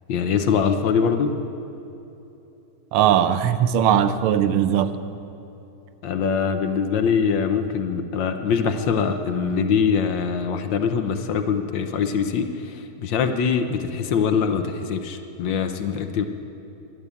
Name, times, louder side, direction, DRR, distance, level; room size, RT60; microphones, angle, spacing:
voice 1, 0.1-1.3 6.0-16.3, left 6 dB, 70° left, 1.4 m, -23 dB
voice 2, 2.9-4.9, right 9 dB, 85° right, 1.6 m, -19 dB
11.0 x 10.5 x 8.2 m
omnidirectional pair, 2.3 m